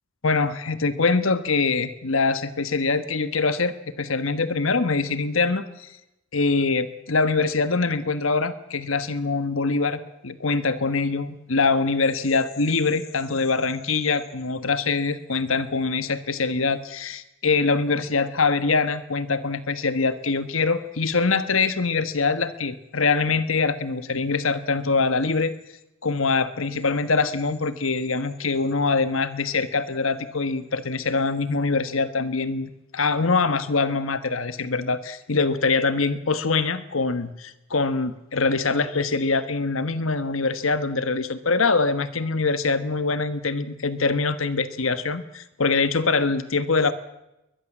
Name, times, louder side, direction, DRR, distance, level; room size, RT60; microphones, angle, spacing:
voice 1, 0.2-5.9 6.3-25.5 26.0-46.9, left 4 dB, 75° left, 13 dB, 1.3 m, -24 dB
22.5 x 20.5 x 7.3 m, 0.90 s
head